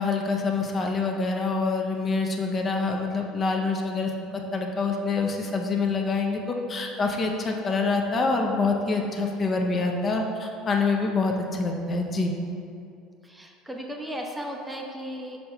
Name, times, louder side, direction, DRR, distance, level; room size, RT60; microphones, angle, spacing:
voice 1, 0.0-12.3, left 3 dB, 35° left, 2 dB, 0.7 m, -26 dB
voice 2, 13.2-15.4, equal, 10° right, 1 dB, 0.7 m, -35 dB
5.4 x 4.2 x 4.4 m, 2.6 s
hypercardioid pair, 70°, 0 cm